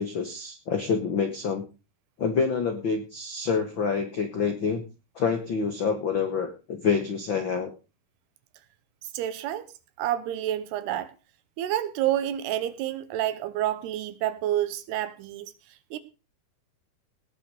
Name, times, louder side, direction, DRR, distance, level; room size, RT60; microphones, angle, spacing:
voice 1, 0.0-1.6 2.2-4.8 5.1-7.7, left 5 dB, 85° left, 1.0 m, -27 dB
voice 2, 9.1-9.7 10.0-11.1 11.6-15.5 15.9-16.0, right 12 dB, 85° right, 3.0 m, -28 dB
18.5 x 7.0 x 4.9 m
omnidirectional pair, 4.6 m